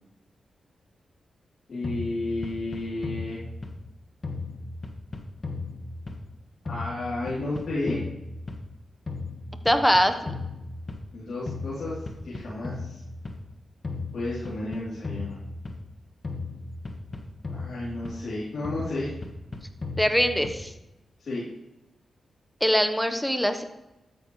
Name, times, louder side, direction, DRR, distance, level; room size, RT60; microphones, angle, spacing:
voice 1, 1.7-3.4 6.6-8.0 11.1-13.0 14.1-15.4 17.4-19.1 21.2-21.4, left 2 dB, 65° left, -8 dB, 3.2 m, -32 dB
sound 1, 1.8-3.9 4.2-6.4 6.7-8.8 9.1-11.2 11.5-13.4 13.8-15.9 16.2-18.3 18.6-20.8, left 3 dB, 40° left, 1.5 m, -36 dB
voice 2, 9.6-10.3 20.0-20.7 22.6-23.6, equal, 5° left, 8 dB, 1.1 m, -22 dB
13.0 x 9.5 x 3.2 m, 0.95 s
supercardioid pair, 45°, 0 cm